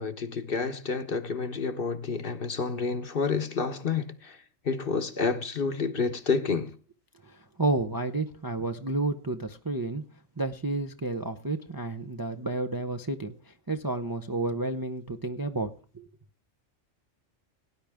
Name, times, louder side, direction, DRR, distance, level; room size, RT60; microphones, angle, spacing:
voice 1, 0.0-4.4 4.6-6.7, left 5 dB, 45° left, 1.1 m, -29 dB
voice 2, 7.2-10.0 10.4-16.0, right 2 dB, 20° right, 0.6 m, -31 dB
18.0 x 10.5 x 3.5 m
omnidirectional pair, 1.4 m